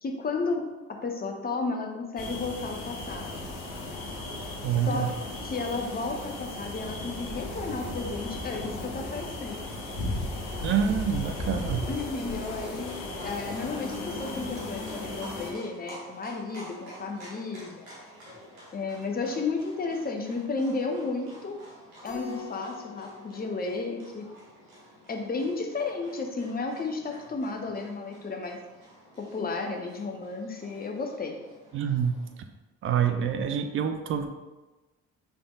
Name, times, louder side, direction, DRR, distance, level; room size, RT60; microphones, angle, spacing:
voice 1, 0.0-3.4 4.8-5.1 5.4-9.7 11.5-11.6 11.9-12.9 13.2-17.9 18.7-21.6 22.0-24.3 25.1-28.6 29.2-31.4, left 3 dB, 25° left, 3 dB, 0.6 m, -33 dB
sound 1, 2.2-15.5, left 2 dB, 70° left, 0.9 m, -36 dB
voice 2, 4.6-5.1 10.6-11.9 31.7-32.1 32.8-34.3, right 7 dB, 30° right, 7 dB, 0.4 m, -26 dB
Livestock farm animals working animals, 12.3-32.3, equal, 70° right, 1.1 m, -50 dB
Keyboard (musical), 22.0-24.7, left 11 dB, 55° left, 1.3 m, -45 dB
5.1 x 3.4 x 2.4 m, 1.1 s
figure-of-eight pair, 45°, 41 cm